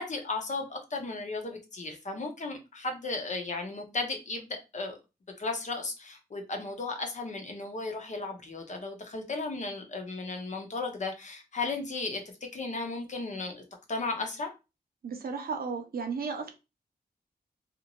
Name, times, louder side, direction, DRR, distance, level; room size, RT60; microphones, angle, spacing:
voice 1, 0.0-5.0 5.4-12.2 12.5-13.6 13.9-14.5, left 3 dB, 45° left, 0.8 m, -35 dB
voice 2, 15.0-16.5, right 5 dB, 65° right, 0.7 m, -34 dB
2.6 x 2.5 x 2.9 m
wide cardioid pair, 100°, 16 cm